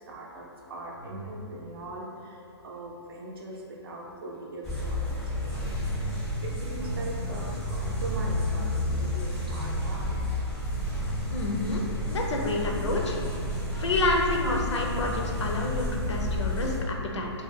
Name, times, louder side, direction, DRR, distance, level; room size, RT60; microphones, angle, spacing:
voice 1, 0.1-5.9 6.4-10.2, right 1 dB, 55° right, -2 dB, 0.5 m, -39 dB
sound 1, 4.6-16.8, left 1 dB, 5° left, 0.4 m, -31 dB
voice 2, 11.3-13.2 13.8-17.3, left 2 dB, 85° left, 1 dB, 0.5 m, -29 dB
2.2 x 2.1 x 3.3 m, 2.4 s
hypercardioid pair, 165°, 14 cm